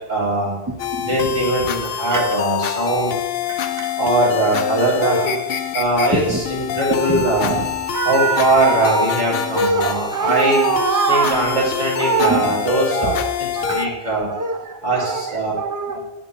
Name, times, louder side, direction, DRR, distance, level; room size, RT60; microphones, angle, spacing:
voice 1, 0.1-0.5 1.1-3.1 4.0-5.3 5.7-7.6 8.0-10.6 11.1-13.1 13.4-13.5 13.7-14.3 14.8-15.5 15.9-16.0, right 2 dB, 45° right, -5 dB, 2.3 m, -20 dB
sound 1, 0.8-13.9, left 9 dB, 70° left, 0.8 m, -26 dB
voice 2, 3.5-3.9 5.0-5.4 6.1-6.4 7.1-7.7 7.9-9.1 9.6-11.7 12.0-12.6 12.9-13.2 13.6-14.0 14.3-15.3 15.6-16.0, right 4 dB, 25° right, 5 dB, 0.5 m, -23 dB
8.2 x 7.7 x 3.0 m, 1.0 s
omnidirectional pair, 1.1 m